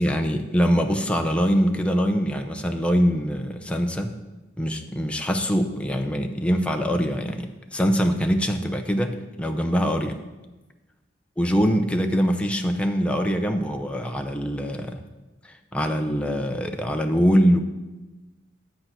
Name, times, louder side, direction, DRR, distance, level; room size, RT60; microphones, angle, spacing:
voice 1, 0.0-4.2 4.6-10.2 11.4-15.0 15.4-17.6, equal, 5° left, 4 dB, 0.7 m, -23 dB
10.5 x 7.9 x 5.9 m, 1.1 s
head